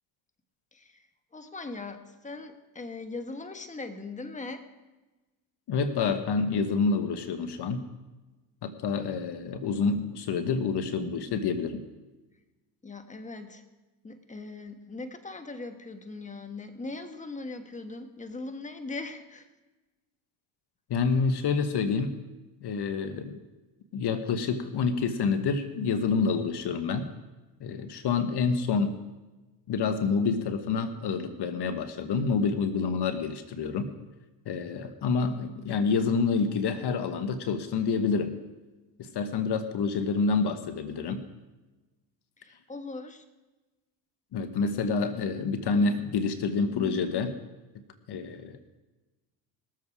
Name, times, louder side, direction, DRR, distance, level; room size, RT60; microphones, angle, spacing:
voice 1, 0.7-1.0 1.3-4.7 9.0-9.1 12.8-13.6 14.0-19.5 42.4-43.2, left 3 dB, 15° left, 7 dB, 1.4 m, -40 dB
voice 2, 5.7-7.9 8.6-11.8 20.9-22.2 22.6-23.4 23.9-27.1 27.6-28.9 29.7-33.9 34.5-38.3 39.0-41.2 44.3-47.4 48.1-48.5, left 5 dB, 60° left, 8 dB, 1.3 m, -28 dB
20.5 x 7.6 x 4.8 m, 1.1 s
supercardioid pair, 65°, 45 cm